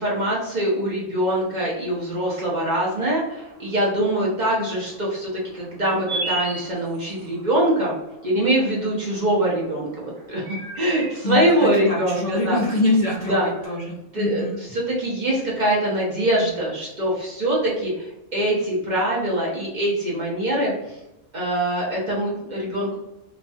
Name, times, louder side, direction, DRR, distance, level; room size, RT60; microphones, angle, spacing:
voice 1, 0.0-8.0 8.2-12.6 13.2-13.5 14.1-21.0 21.3-23.0, right 1 dB, 45° right, -4 dB, 0.7 m, -23 dB
sound 1, 2.9-13.6, right 2 dB, 90° right, 1.1 m, -38 dB
voice 2, 11.2-14.6, left 2 dB, 45° left, -6 dB, 0.5 m, -24 dB
3.1 x 2.2 x 2.6 m, 0.93 s
omnidirectional pair, 1.3 m